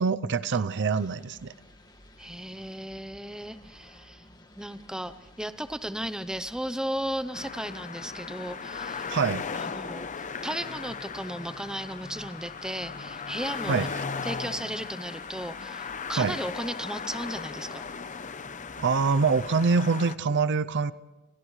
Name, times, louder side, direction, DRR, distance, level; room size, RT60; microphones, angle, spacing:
voice 1, 0.0-1.5 9.1-9.5 13.7-13.9 16.2-16.4 18.8-20.9, right 5 dB, 55° right, 15 dB, 0.5 m, -25 dB
sound 1, 0.9-19.9, left 1 dB, 20° left, 1.9 m, -54 dB
voice 2, 2.2-4.2 4.6-9.1 9.5-10.0 10.4-13.9 14.2-17.8, equal, 5° right, 12 dB, 0.7 m, -35 dB
sound 2, 7.3-20.2, left 5 dB, 35° left, 0.7 m, -37 dB
29.5 x 29.0 x 3.2 m, 1.2 s
head